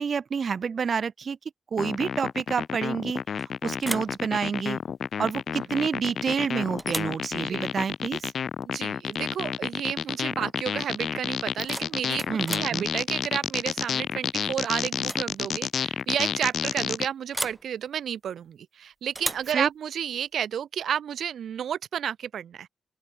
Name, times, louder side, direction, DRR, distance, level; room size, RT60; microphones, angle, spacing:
voice 1, 0.0-1.4 1.7-3.2 3.6-4.8 5.2-8.3 12.3-12.8 19.5-19.7, right 6 dB, 40° right, 1.2 m, -28 dB
sound 1, 1.8-17.1, left 7 dB, 55° left, 1.8 m, -30 dB
sound 2, 3.1-3.4 3.8-4.2 6.0-6.4 6.8-7.2 9.1-9.2 9.6-9.9 11.4-12.8 14.2-14.5 14.9-15.3 15.5-15.6 17.3-17.7 19.1-19.5, right 1 dB, 10° right, 1.0 m, -35 dB
voice 2, 8.6-22.7, right 9 dB, 70° right, 1.4 m, -31 dB
open air
wide cardioid pair, 170°, 0 cm